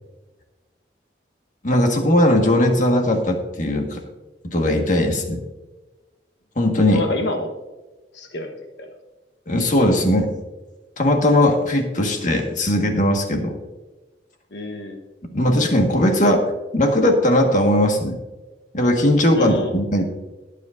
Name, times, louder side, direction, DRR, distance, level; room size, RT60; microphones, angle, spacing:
voice 1, 1.6-4.0 4.4-5.4 6.5-7.0 9.5-10.3 11.0-13.6 15.3-18.2 18.7-20.0, left 1 dB, 45° left, 3 dB, 1.7 m, -18 dB
voice 2, 6.9-7.5 8.1-8.5 8.8-8.9 14.5-15.0 19.3-19.8, left 2 dB, 75° left, 4 dB, 1.2 m, -27 dB
22.0 x 8.3 x 2.6 m, 1.1 s
head